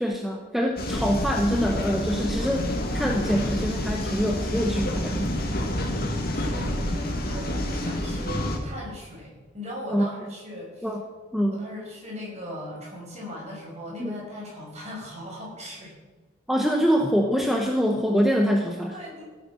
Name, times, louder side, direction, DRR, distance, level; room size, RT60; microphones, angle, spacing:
voice 1, 0.0-5.3 9.9-10.1 10.8-11.0 11.3-11.7 14.0-14.1 16.5-19.0, equal, ahead, 2 dB, 0.9 m, -25 dB
sound 1, 0.8-8.6, left 1 dB, 50° left, 2.3 m, -28 dB
voice 2, 6.3-10.9 11.5-15.9 18.9-19.2, equal, 35° right, -3 dB, 5.9 m, -38 dB
16.0 x 9.3 x 6.3 m, 1.3 s
head